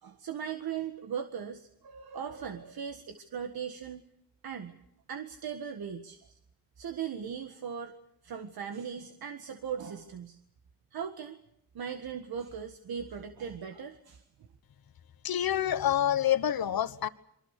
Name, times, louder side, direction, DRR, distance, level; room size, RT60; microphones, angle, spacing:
voice 1, 0.0-4.0 4.4-4.8 5.1-6.4 6.8-7.9 8.2-10.4 10.9-11.4 11.7-14.2, right 7 dB, 85° right, 7 dB, 1.7 m, -38 dB
voice 2, 15.2-17.1, left 11 dB, 80° left, 12 dB, 1.3 m, -27 dB
27.5 x 24.5 x 6.6 m, 0.74 s
cardioid pair, 90°, 36 cm